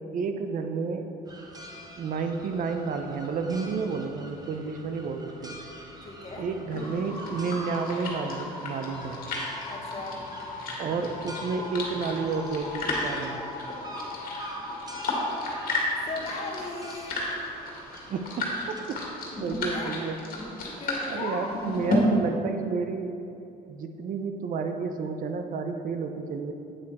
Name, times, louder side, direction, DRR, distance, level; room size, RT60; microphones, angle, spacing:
voice 1, 0.1-1.1 2.0-5.6 6.4-9.2 10.8-13.4 18.1-19.0 19.4-20.2 21.1-23.1 23.7-26.5, right 4 dB, 55° right, 6 dB, 0.6 m, -31 dB
sound 1, 1.2-18.8, right 1 dB, 25° right, 1.0 m, -46 dB
voice 2, 6.0-6.5 9.7-10.3 16.0-17.2 19.7-19.9 20.7-21.6, left 3 dB, 40° left, 0 dB, 1.4 m, -36 dB
sound 2, 6.7-22.0, left 3 dB, 55° left, 2.0 m, -34 dB
sound 3, 6.8-16.1, left 2 dB, 20° left, 1.0 m, -40 dB
8.9 x 6.3 x 4.2 m, 2.7 s
cardioid pair, 110°, 17 cm